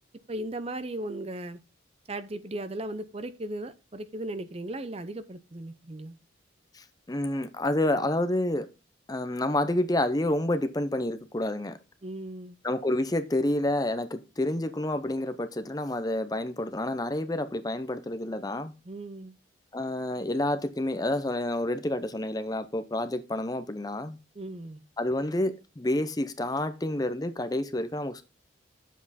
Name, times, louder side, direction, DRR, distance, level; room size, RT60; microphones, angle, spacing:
voice 1, 0.3-1.6 2.1-6.1 12.0-12.6 18.9-19.3 24.3-24.8, right 1 dB, 30° right, 12 dB, 0.6 m, -37 dB
voice 2, 6.7-8.7 9.1-11.8 12.6-18.7 19.7-24.2 25.0-28.2, left 1 dB, 20° left, 11 dB, 0.6 m, -29 dB
9.3 x 7.4 x 4.1 m, 0.30 s
head